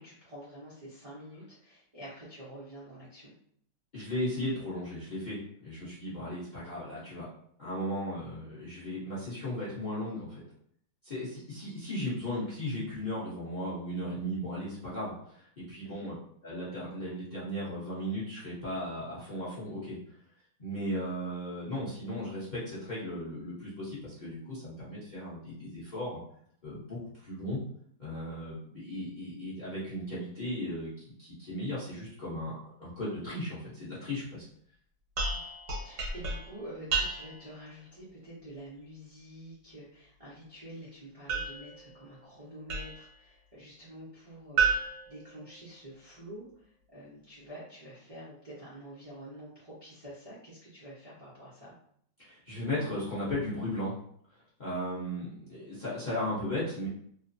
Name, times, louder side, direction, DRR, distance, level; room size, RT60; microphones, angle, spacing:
voice 1, 0.0-3.3 15.8-16.1 35.3-51.7, right 1 dB, 40° right, -10 dB, 0.5 m, -48 dB
voice 2, 3.9-7.3 7.6-10.4 11.0-16.1 16.4-20.0 20.6-26.2 26.6-27.6 28.0-30.9 31.2-34.4 52.2-53.9 54.6-56.9, left 1 dB, 35° left, -9 dB, 0.7 m, -36 dB
sound 1, 35.2-37.5 41.3-43.2 44.6-46.0, right 4 dB, 65° right, 1.3 m, -33 dB
3.0 x 2.0 x 2.6 m, 0.65 s
omnidirectional pair, 1.9 m